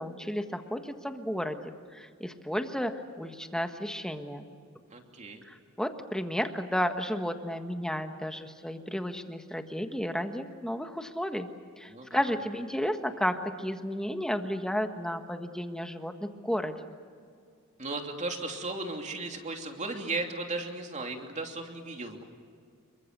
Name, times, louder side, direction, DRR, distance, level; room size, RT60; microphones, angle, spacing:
voice 1, 0.0-4.5 5.4-11.5 11.8-16.8, equal, 5° left, 6 dB, 1.5 m, -33 dB
voice 2, 4.9-5.5 11.9-12.2 17.8-22.2, right 2 dB, 35° right, 3 dB, 3.0 m, -36 dB
28.5 x 23.5 x 6.7 m, 2.2 s
head